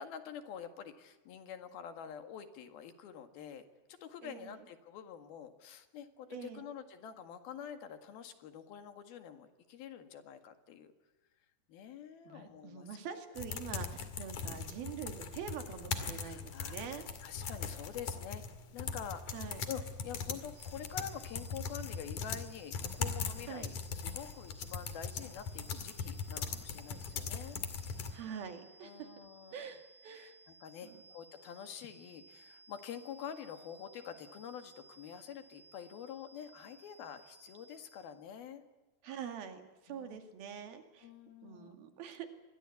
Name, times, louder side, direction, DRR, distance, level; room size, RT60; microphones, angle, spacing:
voice 1, 0.0-3.6 3.9-10.9 11.7-12.9 14.2-14.4 16.1-18.4 18.7-27.6 28.8-29.6 30.2-38.6 39.9-40.2 41.0-41.8, left 8 dB, 80° left, 8 dB, 3.8 m, -47 dB
voice 2, 4.2-4.7 6.3-6.7 12.3-17.0 19.3-19.6 23.5-23.7 28.1-29.1 29.5-30.4 30.8-31.0 39.0-41.1 41.4-42.3, right 7 dB, 75° right, 6 dB, 4.2 m, -45 dB
sound 1, 13.4-28.1, left 6 dB, 60° left, 3.5 m, -40 dB
sound 2, 20.5-38.3, right 3 dB, 60° right, 2.6 m, -60 dB
26.5 x 21.5 x 8.4 m, 1.1 s
omnidirectional pair, 4.3 m